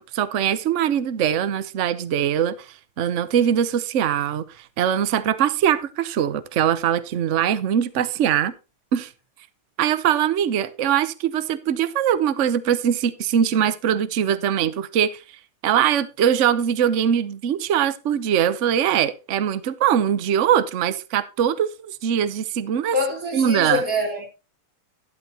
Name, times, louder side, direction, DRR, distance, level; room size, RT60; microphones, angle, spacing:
voice 1, 0.0-8.5 8.9-9.1 9.8-15.2 15.6-23.0 23.3-23.8, right 9 dB, 80° right, 0.6 m, -22 dB
voice 2, 22.9-24.3, left 2 dB, 40° right, 4.2 m, -25 dB
12.0 x 11.5 x 2.8 m
omnidirectional pair, 2.4 m